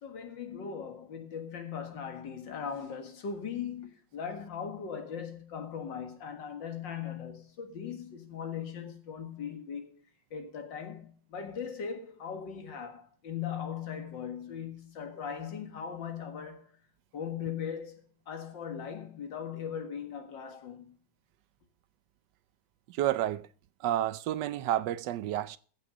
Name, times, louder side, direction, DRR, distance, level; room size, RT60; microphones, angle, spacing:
voice 1, 0.0-10.0 10.3-16.7 17.1-21.0, left 7 dB, 85° left, 2.4 m, -39 dB
voice 2, 22.9-23.5 23.8-25.6, right 12 dB, 75° right, 1.3 m, -30 dB
14.5 x 6.3 x 5.1 m
omnidirectional pair, 1.9 m